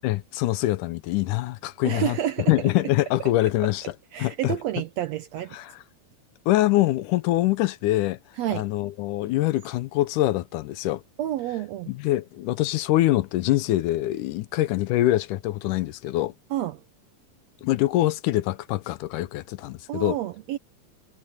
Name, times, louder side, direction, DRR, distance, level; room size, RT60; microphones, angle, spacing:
voice 1, 0.0-2.2 2.5-3.9 4.2-4.6 5.5-5.8 6.5-8.2 8.5-11.0 11.9-16.3 17.6-20.2, left 16 dB, 80° left, 2.2 m, -24 dB
voice 2, 1.8-2.5 4.1-5.6 8.4-8.7 11.2-11.9 16.5-16.8 19.9-20.6, right 12 dB, 75° right, 1.6 m, -29 dB
omnidirectional pair, 3.8 m